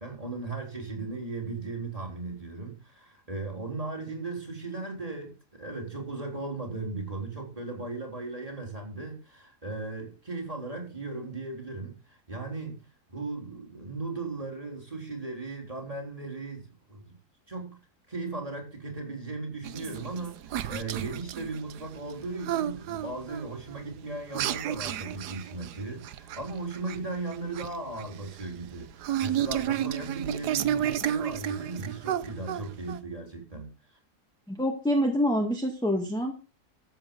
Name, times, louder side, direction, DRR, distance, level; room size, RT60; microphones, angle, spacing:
voice 1, 0.0-12.8 13.1-17.1 17.5-17.8 18.1-33.7, right 3 dB, 20° right, 3.8 m, -37 dB
sound 1, 19.6-33.0, right 10 dB, 90° right, 1.3 m, -32 dB
voice 2, 34.5-36.3, equal, 5° left, 1.9 m, -26 dB
14.0 x 8.2 x 5.3 m
omnidirectional pair, 1.7 m